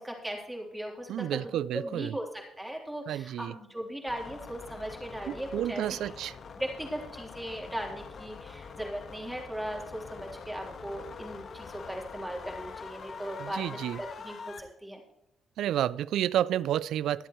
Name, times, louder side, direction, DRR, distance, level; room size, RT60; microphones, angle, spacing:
voice 1, 0.0-5.8 6.6-15.0, right 1 dB, 5° right, 3.6 m, -38 dB
voice 2, 1.1-2.1 3.1-3.5 5.3-6.4 13.4-14.0 15.6-17.3, right 11 dB, 80° right, 0.3 m, -30 dB
sound 1, 4.1-14.6, left 5 dB, 55° left, 1.4 m, -45 dB
23.5 x 7.9 x 3.1 m
cardioid pair, 90°, 0 cm